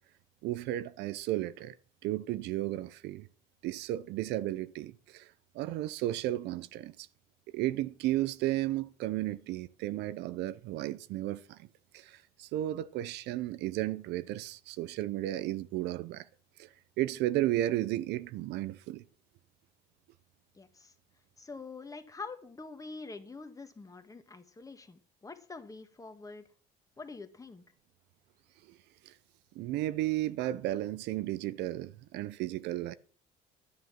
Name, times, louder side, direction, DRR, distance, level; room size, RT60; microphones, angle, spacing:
voice 1, 0.4-1.7 2.0-3.3 3.6-5.3 5.5-7.1 7.5-11.7 11.9-16.3 16.6-16.7 17.0-19.0 28.7-28.8 29.0-29.1 29.6-32.9, right 15 dB, 85° right, 0.7 m, -33 dB
voice 2, 20.5-20.9 21.4-26.5 27.0-27.6, left 4 dB, 20° left, 1.6 m, -46 dB
11.5 x 9.7 x 5.9 m
cardioid pair, 110°, 17 cm